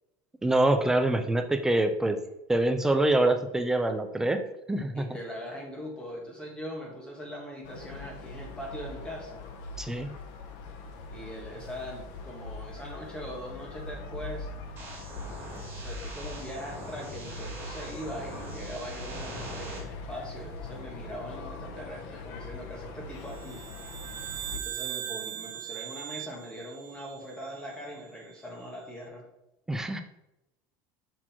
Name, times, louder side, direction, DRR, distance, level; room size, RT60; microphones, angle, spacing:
voice 1, 0.4-2.2 2.5-4.4 4.7-5.1 9.8-10.1 29.7-30.0, right 2 dB, 5° right, 7 dB, 0.4 m, -25 dB
voice 2, 4.9-9.4 11.1-14.5 15.6-23.6 24.5-29.3, equal, 10° left, -1 dB, 1.7 m, -41 dB
sound 1, 7.6-24.6, left 3 dB, 55° left, 1.0 m, -42 dB
sound 2, 14.8-19.8, right 2 dB, 20° right, 2.8 m, -43 dB
sound 3, 23.3-27.8, right 12 dB, 60° right, 1.0 m, -39 dB
6.2 x 6.1 x 4.4 m, 0.90 s
cardioid pair, 180°, 9 cm